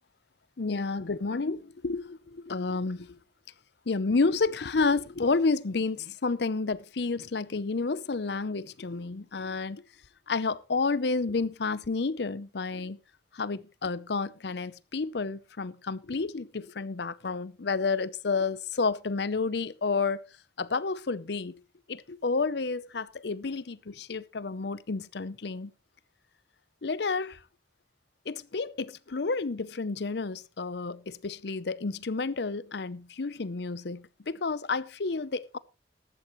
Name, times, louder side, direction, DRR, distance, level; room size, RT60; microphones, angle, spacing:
voice 1, 0.6-3.1 3.9-9.8 10.3-13.0 13.3-20.2 20.6-21.5 21.9-25.7 26.8-27.4 28.3-35.6, left 4 dB, 65° left, 0.6 m, -30 dB
14.5 x 12.5 x 3.1 m
head